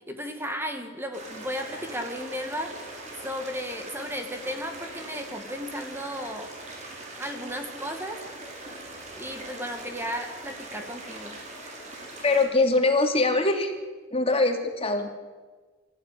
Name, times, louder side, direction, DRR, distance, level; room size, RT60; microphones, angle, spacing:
voice 1, 0.0-2.9 3.2-6.5 7.2-8.2 9.2-11.4, equal, 10° right, 5 dB, 2.1 m, -34 dB
sound 1, 1.1-12.4, right 2 dB, 40° right, 6.6 m, -41 dB
voice 2, 12.2-13.7 14.1-15.1, left 2 dB, 30° left, 4 dB, 2.9 m, -22 dB
26.0 x 15.5 x 9.9 m, 1.4 s
head